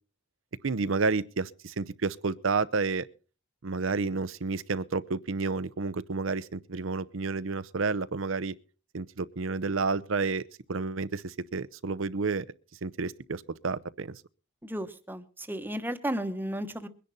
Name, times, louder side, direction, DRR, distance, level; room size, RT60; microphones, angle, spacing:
voice 1, 0.6-3.1 3.6-8.5 8.9-12.5 12.8-14.2, right 4 dB, 70° right, 0.7 m, -30 dB
voice 2, 14.6-16.9, right 1 dB, 10° right, 1.1 m, -34 dB
22.5 x 10.0 x 4.1 m
head